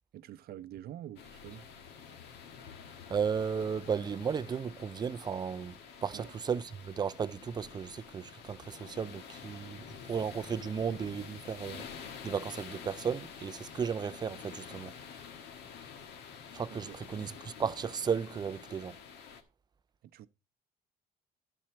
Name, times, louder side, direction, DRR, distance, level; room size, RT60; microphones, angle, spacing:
voice 1, 0.1-1.7 6.1-6.3 16.7-17.0 20.0-20.3, right 12 dB, 65° right, 0.7 m, -46 dB
sound 1, 1.2-19.4, left 7 dB, 80° left, 1.4 m, -48 dB
voice 2, 3.1-11.9 12.2-14.9 16.5-19.0, right 7 dB, 25° right, 0.4 m, -35 dB
11.5 x 4.3 x 5.8 m
cardioid pair, 110°, 17 cm